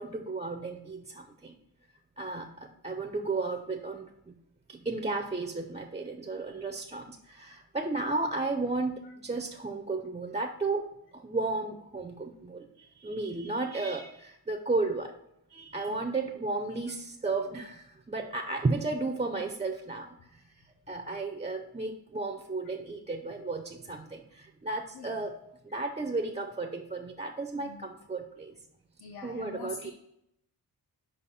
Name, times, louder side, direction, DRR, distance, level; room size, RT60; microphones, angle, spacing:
voice 1, 0.0-1.5 2.2-4.3 4.7-15.1 15.5-20.4 20.9-25.4 25.6-28.5 29.2-29.9, right 3 dB, 20° right, 6 dB, 0.3 m, -34 dB
voice 2, 29.0-29.9, left 4 dB, 70° left, 3 dB, 0.8 m, -44 dB
5.3 x 4.2 x 5.3 m, 0.78 s
wide cardioid pair, 150°, 39 cm